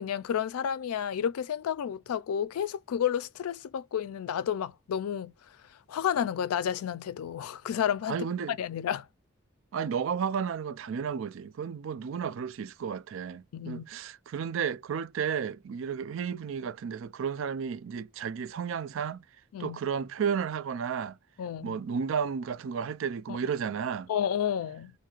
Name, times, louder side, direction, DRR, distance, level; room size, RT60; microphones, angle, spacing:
voice 1, 0.0-5.3 5.9-8.2 8.6-9.1 13.5-13.9 19.5-19.8 21.4-21.8 24.1-24.9, left 8 dB, 90° left, 0.3 m, -31 dB
voice 2, 8.1-8.6 9.7-19.2 19.6-21.2 21.6-24.1, right 7 dB, 65° right, 0.3 m, -32 dB
2.5 x 2.4 x 2.9 m
head